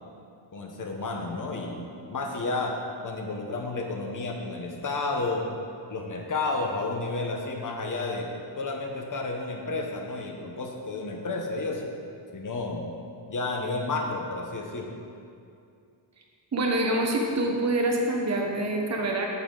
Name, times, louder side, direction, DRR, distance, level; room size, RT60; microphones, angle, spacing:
voice 1, 0.5-2.8 3.0-5.4 5.9-8.3 8.6-11.9 12.3-12.9 13.3-14.9, left 3 dB, 45° left, 2 dB, 1.1 m, -31 dB
voice 2, 16.5-19.3, right 1 dB, 35° right, 0 dB, 1.1 m, -26 dB
9.8 x 6.8 x 4.0 m, 2.5 s
wide cardioid pair, 150°, 44 cm